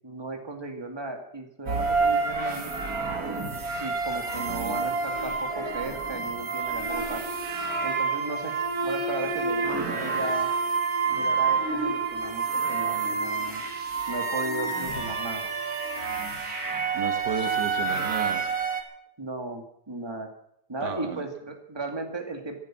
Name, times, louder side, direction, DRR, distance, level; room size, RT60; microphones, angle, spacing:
voice 1, 0.0-2.7 3.8-7.2 7.8-8.5 8.8-10.5 11.1-13.6 14.1-15.4 19.2-20.3 20.7-22.6, right 2 dB, 15° right, 4 dB, 2.2 m, -35 dB
sound 1, 1.7-18.8, right 4 dB, 60° right, 2.6 m, -28 dB
voice 2, 16.9-18.5 20.8-21.3, right 6 dB, 75° right, 8 dB, 1.9 m, -34 dB
15.0 x 12.0 x 7.5 m, 0.74 s
omnidirectional pair, 1.8 m